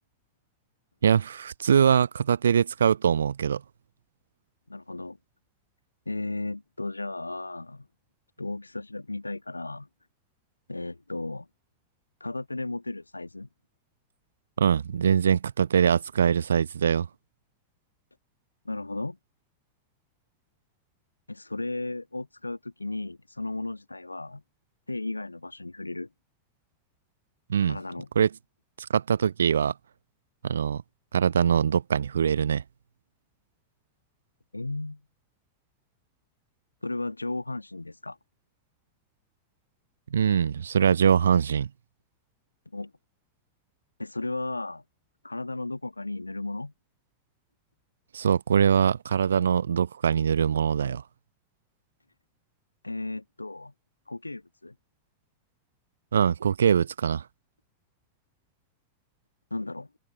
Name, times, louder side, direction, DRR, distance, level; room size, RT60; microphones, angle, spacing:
voice 1, 1.0-3.6 14.6-17.1 27.5-27.8 28.1-28.3 28.8-29.7 30.4-30.8 31.1-32.6 40.1-41.7 48.1-51.0 56.1-57.2, right 7 dB, 70° right, 1.0 m, -23 dB
voice 2, 4.7-5.2 6.0-7.9 8.4-9.9 10.7-11.5 12.2-13.5 18.6-19.2 21.3-24.4 24.9-26.1 27.6-28.1 34.5-35.0 36.8-38.2 42.7-42.9 44.0-44.8 45.2-46.7 52.8-53.7 54.1-54.7 59.5-59.9, left 2 dB, 85° left, 1.5 m, -34 dB
figure-of-eight pair, 90°, 0 cm